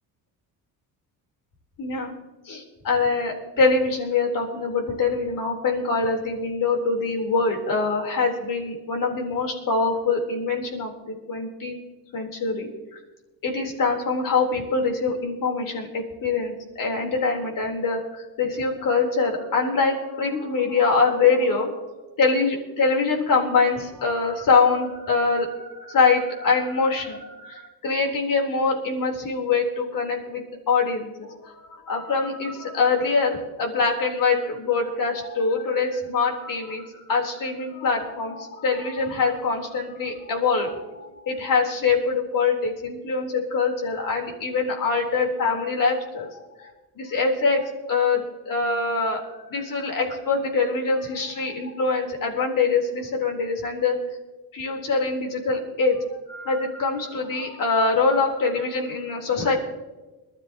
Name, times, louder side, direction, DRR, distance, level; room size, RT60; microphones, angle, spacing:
voice 1, 1.8-2.1 2.5-10.9 11.3-11.8 12.1-12.7 13.4-46.7 47.0-54.0 54.5-59.6, left 4 dB, 60° left, 1 dB, 4.0 m, -24 dB
22.0 x 12.5 x 3.0 m, 1.1 s
cardioid pair, 85°, 37 cm